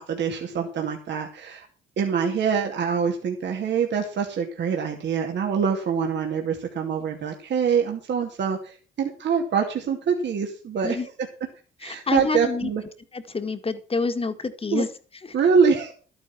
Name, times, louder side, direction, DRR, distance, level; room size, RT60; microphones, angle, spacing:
voice 1, 0.0-1.7 2.0-11.0 11.8-12.8 14.7-14.8 15.3-15.9, right 6 dB, 65° right, 2 dB, 2.6 m, -25 dB
voice 2, 11.8-12.7 13.1-14.9 15.2-15.3, left 4 dB, 30° left, 9 dB, 2.0 m, -27 dB
12.0 x 9.6 x 6.0 m, 0.38 s
cardioid pair, 90°, 20 cm